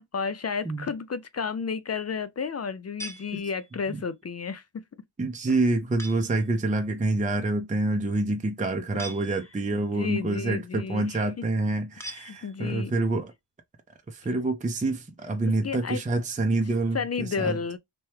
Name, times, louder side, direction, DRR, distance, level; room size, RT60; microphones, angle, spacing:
voice 1, 0.0-4.8 8.9-9.0 9.7-11.4 12.1-12.9 15.6-16.0 16.9-17.8, left 5 dB, 35° left, 0.4 m, -32 dB
sound 1, 3.0-3.9 6.0-6.5 9.0-9.8 12.0-12.9, right 1 dB, 5° left, 0.9 m, -43 dB
voice 2, 5.2-13.3 14.1-17.6, right 2 dB, 15° right, 0.6 m, -27 dB
3.0 x 2.2 x 3.2 m
cardioid pair, 55°, 45 cm